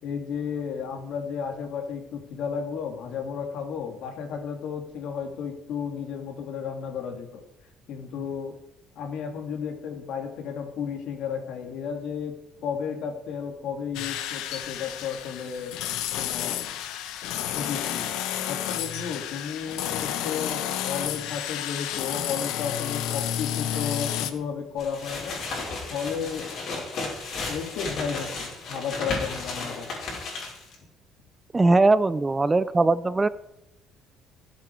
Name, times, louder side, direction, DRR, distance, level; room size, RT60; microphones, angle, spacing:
voice 1, 0.0-7.4 7.9-8.6 8.9-12.3 12.6-15.7 16.1-16.6 17.5-18.1 18.3-25.4 25.9-26.9 27.5-30.0, left 6 dB, 65° left, 4 dB, 3.1 m, -33 dB
sound 1, 13.9-24.3, left 11 dB, 85° left, 1.3 m, -31 dB
sound 2, 24.8-30.7, left 3 dB, 50° left, 6.2 m, -34 dB
voice 2, 31.5-33.3, right 3 dB, 15° right, 16 dB, 0.4 m, -20 dB
20.0 x 8.5 x 5.0 m, 0.87 s
cardioid pair, 135°, 0 cm